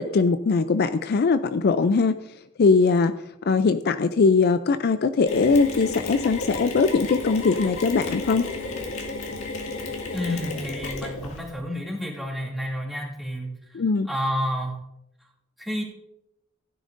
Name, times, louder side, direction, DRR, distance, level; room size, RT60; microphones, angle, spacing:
voice 1, 0.0-2.1 2.6-3.1 3.4-8.5 13.7-14.1, left 4 dB, 50° left, 11 dB, 0.4 m, -21 dB
Mechanisms, 5.3-11.5, left 3 dB, 80° left, 1.9 m, -32 dB
voice 2, 10.1-13.5 14.1-14.8 15.6-15.8, equal, ahead, -3 dB, 2.5 m, -30 dB
16.0 x 9.9 x 2.6 m, 0.84 s
head